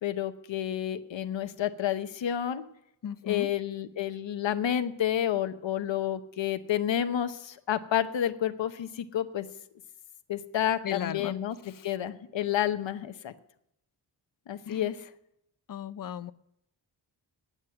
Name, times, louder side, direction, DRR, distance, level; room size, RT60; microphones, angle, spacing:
voice 1, 0.0-2.6 3.2-9.5 10.3-11.6 11.8-13.3 14.5-15.0, left 10 dB, 90° left, 10 dB, 0.9 m, -30 dB
voice 2, 3.0-3.5 10.8-11.4 11.6-11.9 14.7-14.9 15.7-16.3, left 9 dB, 50° left, 15 dB, 0.5 m, -36 dB
9.3 x 8.9 x 7.5 m, 0.78 s
wide cardioid pair, 165°, 43 cm